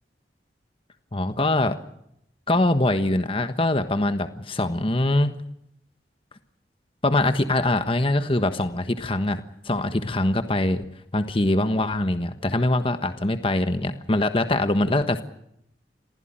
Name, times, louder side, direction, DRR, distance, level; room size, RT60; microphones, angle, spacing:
voice 1, 1.1-1.8 2.5-5.3 7.0-10.8 11.1-15.2, left 1 dB, 30° left, 9 dB, 1.3 m, -23 dB
26.5 x 16.0 x 8.9 m, 0.77 s
head